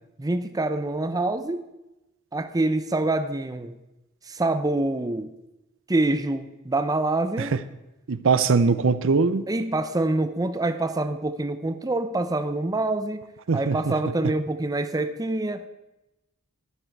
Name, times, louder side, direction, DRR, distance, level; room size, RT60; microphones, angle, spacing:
voice 1, 0.2-1.7 2.3-3.8 4.3-5.3 5.9-7.5 9.5-13.2 13.5-15.7, right 2 dB, 15° right, 9 dB, 0.6 m, -26 dB
voice 2, 8.1-9.4 13.5-13.9, right 4 dB, 65° right, 13 dB, 0.6 m, -21 dB
12.5 x 11.5 x 4.6 m, 0.96 s
head